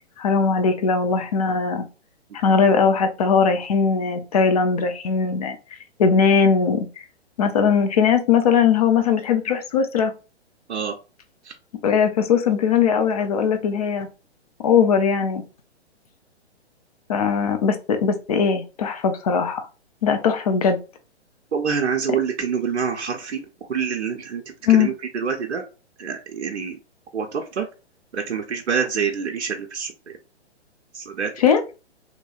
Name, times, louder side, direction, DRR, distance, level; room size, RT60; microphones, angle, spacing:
voice 1, 0.2-1.8 2.4-5.6 6.0-7.0 7.4-10.1 11.8-14.1 14.6-15.4 17.1-19.7 20.0-20.8 24.7-24.9 31.4-31.6, left 6 dB, 35° left, 6 dB, 0.4 m, -19 dB
voice 2, 21.5-23.4 23.7-24.4 24.7-25.6 26.0-26.8 27.1-27.7 28.1-29.9 30.9-31.3, right 6 dB, 75° right, 4 dB, 0.5 m, -26 dB
2.8 x 2.2 x 2.7 m, 0.32 s
figure-of-eight pair, 120°, 33 cm